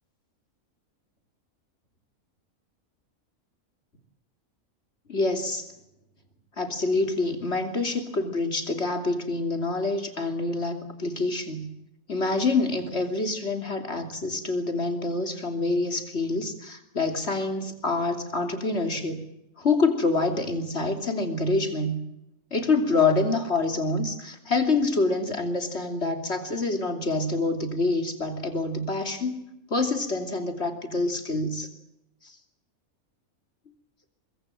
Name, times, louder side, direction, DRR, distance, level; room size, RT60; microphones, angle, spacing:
voice 1, 5.1-5.7 6.6-11.7 12.1-19.2 19.6-22.0 22.5-29.4 29.7-31.7 32.2-32.3, left 3 dB, 45° left, 5 dB, 3.2 m, -26 dB
23.5 x 23.5 x 7.7 m, 0.87 s
omnidirectional pair, 1.5 m